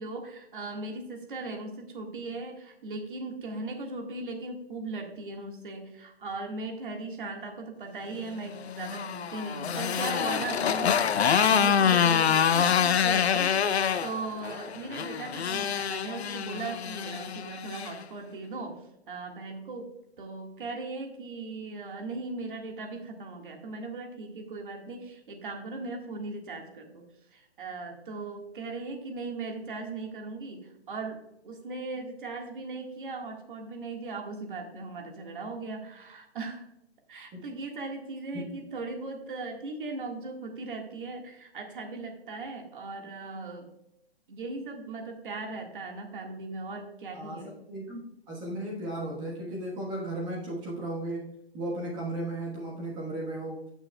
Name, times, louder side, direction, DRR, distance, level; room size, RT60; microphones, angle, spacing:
voice 1, 0.0-27.0 27.3-36.7 37.1-43.7 44.3-47.6, right 3 dB, 50° right, 2 dB, 1.8 m, -38 dB
Motorcycle, 8.5-18.0, left 8 dB, 80° left, 0.7 m, -26 dB
voice 2, 47.7-53.6, right 1 dB, 15° right, -4 dB, 1.3 m, -35 dB
14.0 x 6.3 x 2.3 m, 0.81 s
hypercardioid pair, 160°, 32 cm